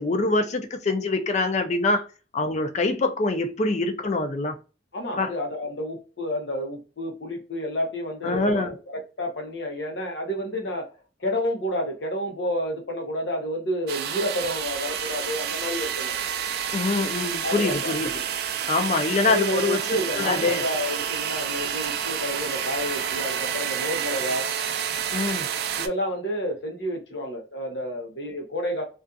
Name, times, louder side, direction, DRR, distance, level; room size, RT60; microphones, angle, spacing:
voice 1, 0.0-2.0 2.3-4.5 5.2-5.3 8.2-8.7 16.7-18.2 18.7-20.6 25.1-25.5, left 3 dB, 40° left, 0.4 m, -24 dB
voice 2, 4.9-10.9 11.2-16.2 17.4-17.9 19.3-24.5 25.7-28.8, equal, 90° left, 0.8 m, -30 dB
sound 1, 13.9-25.9, right 8 dB, 65° right, 0.3 m, -29 dB
2.4 x 2.4 x 2.6 m
head